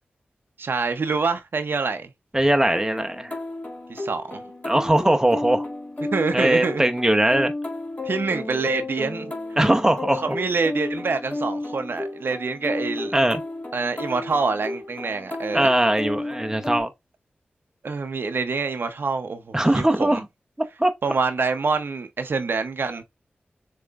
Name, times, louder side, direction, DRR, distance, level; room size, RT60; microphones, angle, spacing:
voice 1, 0.6-2.1 3.9-4.4 6.0-6.8 8.0-9.3 10.2-13.1 13.7-15.7 17.8-20.2 21.0-23.0, right 4 dB, 70° right, 0.8 m, -26 dB
voice 2, 2.3-3.3 4.6-5.7 6.3-7.5 9.6-10.2 13.1-13.4 15.5-16.9 19.5-20.2 20.8-20.9, right 1 dB, 15° right, 0.8 m, -20 dB
sound 1, 2.7-16.8, left 2 dB, 40° left, 1.8 m, -33 dB
6.8 x 3.1 x 2.5 m
cardioid pair, 60°, 4 cm